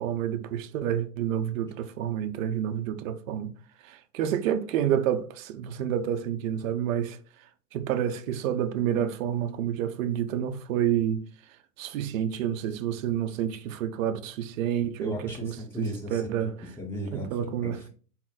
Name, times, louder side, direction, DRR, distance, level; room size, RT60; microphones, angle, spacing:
voice 1, 0.0-3.5 3.8-11.3 11.8-16.6 17.1-17.8, right 10 dB, 60° right, 0.6 m, -29 dB
voice 2, 15.0-17.4 17.7-17.9, equal, 5° left, 1.1 m, -36 dB
3.8 x 2.0 x 4.0 m
hypercardioid pair, 110°, 46 cm